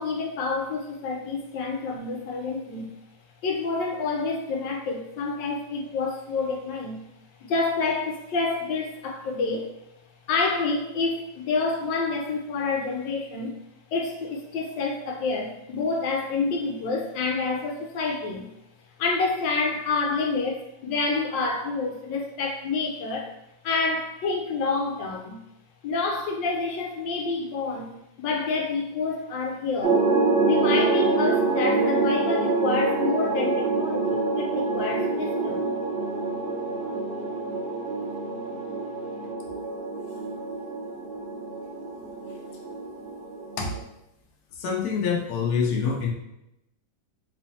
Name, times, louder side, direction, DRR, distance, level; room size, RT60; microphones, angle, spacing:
voice 1, 0.0-2.9 3.4-7.0 7.4-9.7 10.3-13.5 13.9-18.5 19.0-23.3 23.6-25.4 25.8-30.0 30.4-35.7, left 4 dB, 85° left, 1 dB, 1.3 m, -28 dB
sound 1, 29.8-43.8, right 3 dB, 65° right, 1.1 m, -26 dB
voice 2, 44.5-46.1, left 6 dB, 65° left, -1 dB, 1.1 m, -26 dB
4.2 x 3.0 x 2.8 m, 0.87 s
omnidirectional pair, 2.0 m